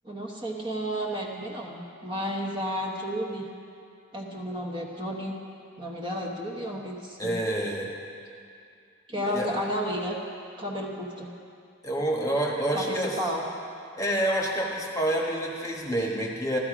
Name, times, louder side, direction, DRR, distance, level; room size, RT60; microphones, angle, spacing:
voice 1, 0.0-3.5 4.1-5.4 5.8-7.3 9.1-10.2 10.6-11.3 12.7-13.4, equal, 20° right, -1 dB, 1.1 m, -32 dB
voice 2, 7.2-7.9 9.1-9.5 11.8-13.2 14.0-16.6, right 1 dB, 15° left, -1 dB, 1.3 m, -28 dB
15.5 x 13.0 x 5.0 m, 2.4 s
head